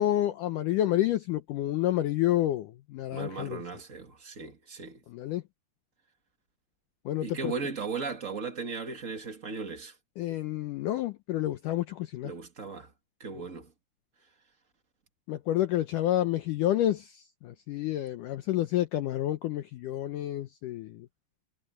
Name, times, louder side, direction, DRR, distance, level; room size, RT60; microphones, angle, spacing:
voice 1, 0.0-3.6 5.1-5.4 7.1-7.5 10.2-12.3 15.3-21.1, left 13 dB, 80° left, 1.9 m, -29 dB
voice 2, 3.1-5.0 7.2-9.9 12.2-12.9 13.2-13.7, right 4 dB, 40° right, 1.1 m, -37 dB
omnidirectional pair, 4.6 m